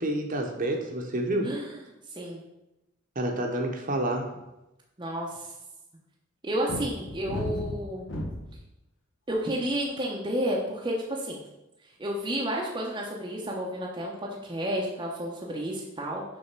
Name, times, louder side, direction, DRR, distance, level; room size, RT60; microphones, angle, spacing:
voice 1, 0.0-1.5 3.2-4.3, right 1 dB, 45° right, 2 dB, 1.0 m, -28 dB
voice 2, 1.4-1.8 2.1-2.4 5.0-5.5 6.4-8.1 9.3-11.4 12.0-16.2, right 1 dB, 20° right, -3 dB, 0.8 m, -31 dB
sound 1, 6.7-8.6 9.3-9.7, left 1 dB, 65° left, 1.1 m, -34 dB
6.4 x 3.5 x 5.9 m, 0.94 s
head